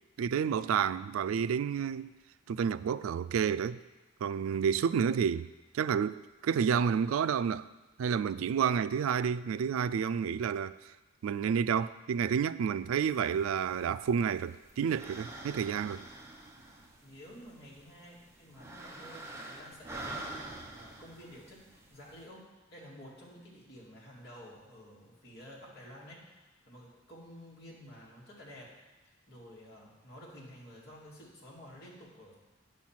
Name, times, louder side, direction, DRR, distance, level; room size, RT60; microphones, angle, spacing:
voice 1, 0.2-2.1 2.5-3.8 4.2-5.5 5.7-7.6 8.0-10.7 11.2-16.0, right 7 dB, 85° right, 0.3 m, -30 dB
sound 1, 13.0-22.2, right 2 dB, 15° right, 0.8 m, -47 dB
voice 2, 17.0-28.7 29.3-32.3, equal, 50° left, 2.3 m, -51 dB
9.2 x 4.5 x 7.3 m
head